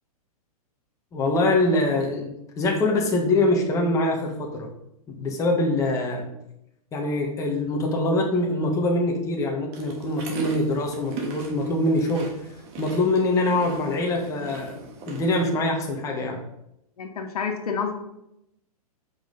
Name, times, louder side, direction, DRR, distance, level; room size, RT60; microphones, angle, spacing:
voice 1, 1.1-4.7 5.1-6.3 6.9-12.3 12.8-16.4, left 2 dB, 15° left, 0 dB, 1.3 m, -24 dB
sound 1, 9.7-15.5, right 4 dB, 35° right, 1.6 m, -39 dB
voice 2, 17.0-17.9, left 6 dB, 75° left, 4 dB, 1.5 m, -28 dB
7.6 x 5.5 x 3.9 m, 0.81 s
hypercardioid pair, 145°, 19 cm